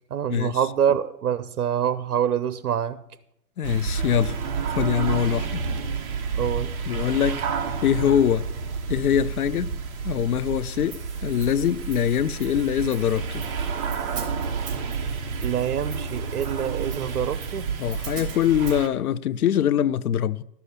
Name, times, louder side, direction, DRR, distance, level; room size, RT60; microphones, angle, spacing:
voice 1, 0.1-3.0 6.4-6.7 15.4-17.7, right 9 dB, 70° right, 0.8 m, -26 dB
voice 2, 3.6-4.4 4.7-5.6 6.9-7.4 7.8-8.5 8.9-9.7 10.0-13.4 17.8-20.4, left 9 dB, 70° left, 0.7 m, -23 dB
sound 1, 3.6-18.9, right 6 dB, 20° right, 1.0 m, -30 dB
Hi-hat, 10.9-18.8, right 6 dB, 40° right, 3.2 m, -44 dB
12.5 x 7.0 x 8.3 m
hypercardioid pair, 145°, 47 cm